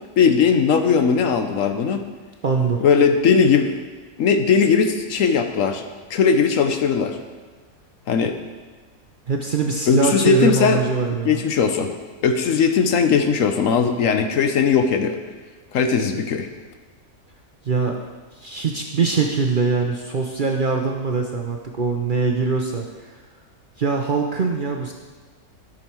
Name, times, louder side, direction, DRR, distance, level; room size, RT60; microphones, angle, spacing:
voice 1, 0.2-2.0 2.8-3.8 4.2-7.2 8.1-8.4 9.9-10.8 11.2-11.9 12.2-15.2 15.7-16.5, left 6 dB, 65° left, 7 dB, 1.0 m, -18 dB
voice 2, 2.4-2.8 9.3-11.4 17.6-18.0 18.3-23.1 23.8-24.9, right 4 dB, 50° right, 1 dB, 0.7 m, -22 dB
12.5 x 6.4 x 4.5 m, 1.3 s
omnidirectional pair, 1.5 m